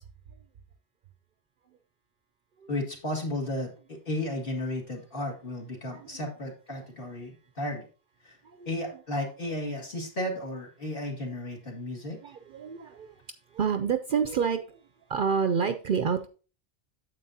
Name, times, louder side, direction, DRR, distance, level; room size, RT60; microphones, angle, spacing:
voice 1, 2.7-7.8 8.2-8.3 8.7-12.2, left 1 dB, 50° left, 2.2 m, -34 dB
voice 2, 5.9-6.2 8.4-8.9 12.2-13.2 13.5-14.8 15.1-16.3, right 6 dB, 60° right, 0.6 m, -29 dB
9.2 x 7.7 x 2.7 m
omnidirectional pair, 1.2 m